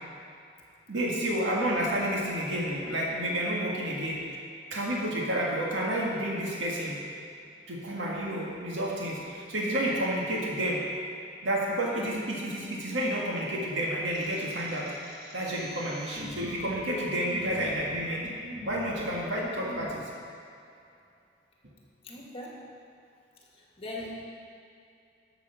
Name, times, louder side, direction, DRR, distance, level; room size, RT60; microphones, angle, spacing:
voice 1, 0.9-4.2 4.7-7.0 7.7-10.8 11.4-14.9 15.3-18.2 18.6-20.0, right 1 dB, 85° right, -3 dB, 1.8 m, -30 dB
voice 2, 11.9-12.2 22.0-22.6 23.8-24.1, left 1 dB, 30° left, -2 dB, 1.8 m, -40 dB
sound 1, 14.1-19.9, left 1 dB, 25° right, 2.0 m, -45 dB
12.0 x 7.0 x 5.7 m, 2.5 s
head